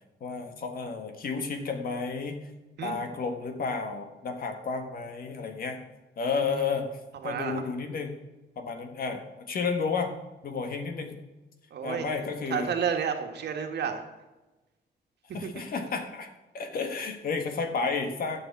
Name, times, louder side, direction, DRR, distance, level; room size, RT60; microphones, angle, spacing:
voice 1, 0.2-2.4 2.8-5.8 6.2-6.9 7.2-8.1 8.5-10.1 10.4-11.2 11.8-12.7 15.3-16.3 16.5-18.4, left 4 dB, 60° left, 5 dB, 1.7 m, -31 dB
voice 2, 6.4-6.7 7.2-7.6 11.7-14.0 15.3-15.6, right 7 dB, 75° right, 4 dB, 1.7 m, -32 dB
12.5 x 7.3 x 7.3 m, 1.1 s
wide cardioid pair, 180°, 17 cm